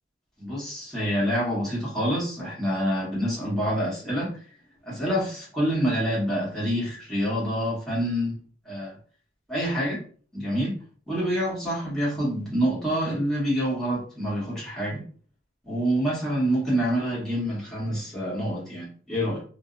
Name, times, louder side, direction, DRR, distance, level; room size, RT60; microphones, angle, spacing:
voice 1, 0.4-4.4 4.9-8.4 8.6-9.0 9.5-10.0 10.3-15.0 15.6-19.4, equal, 5° left, -7 dB, 1.2 m, -27 dB
2.5 x 2.0 x 2.5 m, 0.43 s
head